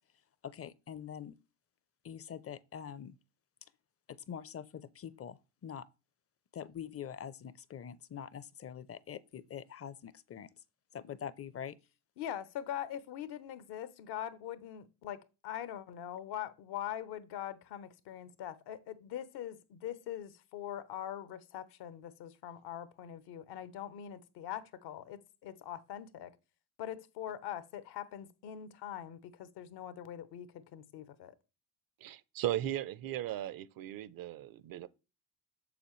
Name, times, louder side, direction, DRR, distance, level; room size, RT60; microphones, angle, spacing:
voice 1, 0.4-1.3 2.0-3.1 4.3-5.4 5.6-5.8 6.5-10.5 10.9-11.7, left 8 dB, 35° left, 0.6 m, -44 dB
voice 2, 12.2-26.3 26.8-31.3, left 10 dB, 70° left, 0.9 m, -42 dB
voice 3, 32.0-34.9, right 12 dB, 55° right, 0.6 m, -37 dB
7.0 x 6.7 x 3.1 m
supercardioid pair, 70°, 41 cm